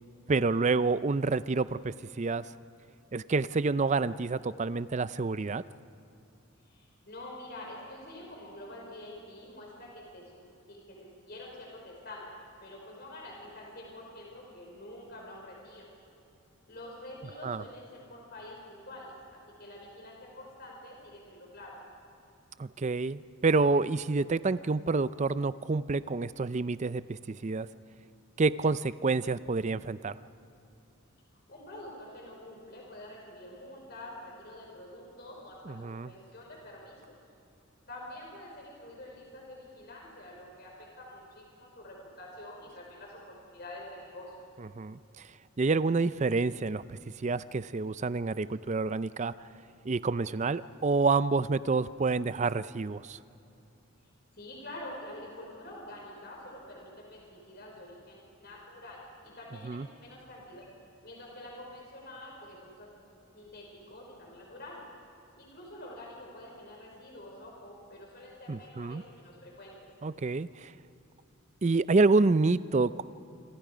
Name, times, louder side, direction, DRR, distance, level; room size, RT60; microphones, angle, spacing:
voice 1, 0.3-2.5 3.1-5.6 17.4-17.6 22.6-27.7 28.4-30.2 35.7-36.1 44.8-45.3 45.6-49.3 49.8-53.2 59.6-59.9 68.5-69.0 70.0-70.7 71.6-73.0, right 3 dB, 35° right, 16 dB, 0.5 m, -28 dB
voice 2, 6.6-12.4 12.6-15.9 16.7-21.8 31.5-35.8 36.0-37.2 37.9-44.3 54.3-60.6 61.0-62.9 63.3-64.9 65.4-69.8, left 1 dB, 50° left, -1 dB, 5.1 m, -47 dB
26.5 x 26.0 x 5.1 m, 2.8 s
head